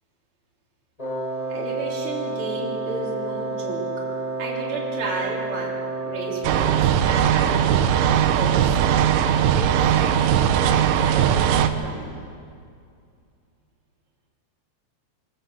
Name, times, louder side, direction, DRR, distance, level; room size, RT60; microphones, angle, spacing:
Wind instrument woodwind instrument, 1.0-6.7, right 3 dB, 10° left, 4.2 m, -30 dB
voice 1, 1.5-3.9 4.4-5.7 6.1-8.8 9.2-12.2, right 2 dB, 30° right, -4 dB, 3.7 m, -33 dB
sound 1, 6.4-11.7, right 9 dB, 85° right, 3.2 m, -19 dB
23.0 x 14.0 x 8.2 m, 2.3 s
omnidirectional pair, 5.4 m